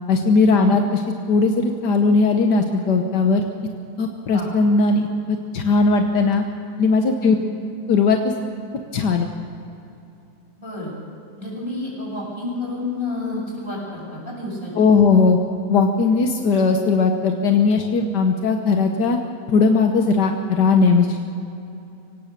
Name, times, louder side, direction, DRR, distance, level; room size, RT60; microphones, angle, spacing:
voice 1, 0.1-1.0 1.3-3.4 4.0-5.0 5.3-6.4 6.8-7.4 7.9-8.3 8.9-9.3 14.8-15.4 15.7-19.2 19.5-21.3, left 4 dB, 80° left, 4 dB, 1.7 m, -18 dB
voice 2, 10.6-10.9 11.4-14.9, left 2 dB, 30° left, -4 dB, 7.4 m, -30 dB
24.5 x 17.5 x 6.7 m, 2.7 s
omnidirectional pair, 1.8 m